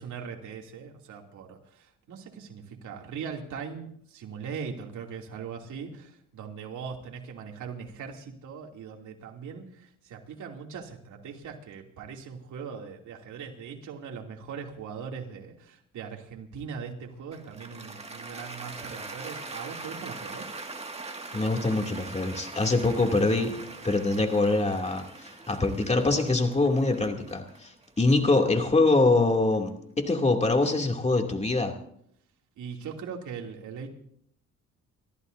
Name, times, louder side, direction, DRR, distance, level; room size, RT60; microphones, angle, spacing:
voice 1, 0.0-20.5 32.6-33.9, right 6 dB, 75° right, 1 dB, 2.9 m, -40 dB
Cheering / Applause, 17.3-29.5, right 3 dB, 20° right, 2.1 m, -42 dB
voice 2, 21.3-23.5 23.8-29.7 30.0-31.7, left 2 dB, 20° left, 3 dB, 2.8 m, -24 dB
29.5 x 14.0 x 2.7 m, 0.67 s
cardioid pair, 90°, 30 cm